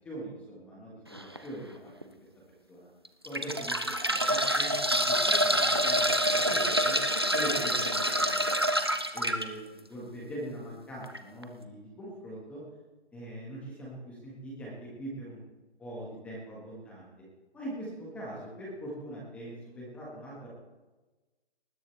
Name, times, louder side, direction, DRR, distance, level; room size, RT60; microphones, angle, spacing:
voice 1, 0.0-2.1 2.7-2.9 3.2-7.0 7.3-8.6 9.1-12.6 13.1-15.4 15.8-17.1 17.5-20.6, right 1 dB, 5° left, -5 dB, 1.4 m, -42 dB
sound 1, 1.1-1.4 2.0-2.1 3.1-9.5 11.0-11.2 11.4-11.5, equal, 25° right, 0.4 m, -27 dB
19.5 x 10.5 x 3.3 m, 1.2 s
hypercardioid pair, 165°, 32 cm